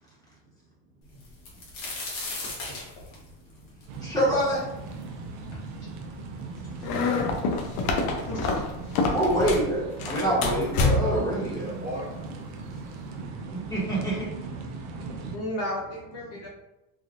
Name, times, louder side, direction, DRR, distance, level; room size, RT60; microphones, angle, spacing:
sound 1, 1.2-5.0 5.5-5.6 6.4-6.5 6.7-7.4 8.3-8.4 8.8-9.0, left 2 dB, 65° left, 1.3 m, -37 dB
sound 2, 3.9-15.4, right 4 dB, 45° right, 0.5 m, -39 dB
voice 1, 4.0-4.6 9.1-11.7 13.7-14.3, right 1 dB, 10° left, -7 dB, 1.2 m, -25 dB
voice 2, 5.5-5.9 6.4-6.8 7.5-7.6 11.6-12.6 12.9-13.3 13.6-13.7 15.2-15.3, right 1 dB, 20° right, -6 dB, 1.1 m, -41 dB
voice 3, 6.6-7.1 7.5-7.8 8.0-8.5 15.3-16.5, left 1 dB, 40° left, -4 dB, 0.6 m, -35 dB
sound 3, 6.8-9.7 10.0-11.3, left 3 dB, 90° left, 0.7 m, -26 dB
3.4 x 2.5 x 2.4 m, 0.97 s
cardioid pair, 135°, 40 cm